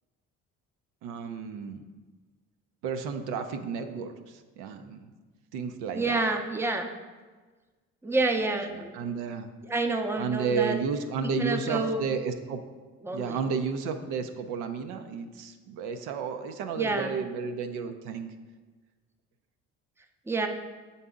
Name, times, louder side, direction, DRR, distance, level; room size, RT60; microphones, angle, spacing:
voice 1, 1.0-1.8 2.8-4.1 4.6-5.1 5.5-6.3 8.7-9.5 10.2-12.6 13.1-18.3, right 5 dB, 85° right, 7 dB, 0.6 m, -32 dB
voice 2, 5.9-6.9 8.0-8.9 9.7-10.8 11.2-12.0 13.0-13.4 16.8-17.1 20.3-20.5, right 3 dB, 10° right, 4 dB, 0.5 m, -28 dB
6.6 x 4.0 x 3.6 m, 1.3 s
supercardioid pair, 85°, 31 cm